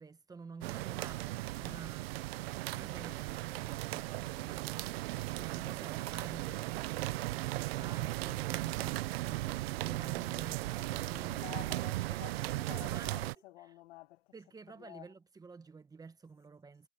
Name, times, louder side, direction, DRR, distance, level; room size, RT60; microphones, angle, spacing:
voice 1, 0.0-5.1 5.3-11.7 12.0-13.2 14.3-16.9, right 4 dB, 10° right, 1.2 m, -51 dB
sound 1, 0.6-13.3, right 18 dB, 80° right, 0.8 m, -37 dB
voice 2, 11.3-14.3 14.7-15.1, left 17 dB, 75° left, 1.9 m, -50 dB
supercardioid pair, 140°, 30 cm